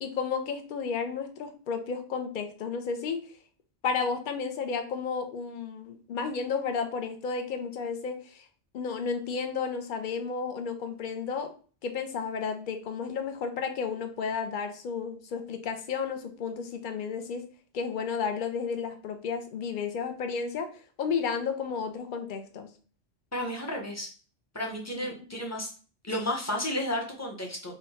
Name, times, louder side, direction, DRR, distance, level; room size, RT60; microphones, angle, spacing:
voice 1, 0.0-3.2 3.8-8.5 8.7-11.5 11.8-17.4 17.7-22.7 25.0-25.1, left 5 dB, 55° left, 7 dB, 0.6 m, -32 dB
voice 2, 23.3-24.1 24.5-25.7 26.0-27.8, left 1 dB, 15° left, 0 dB, 0.6 m, -32 dB
3.7 x 2.2 x 4.0 m, 0.40 s
omnidirectional pair, 1.2 m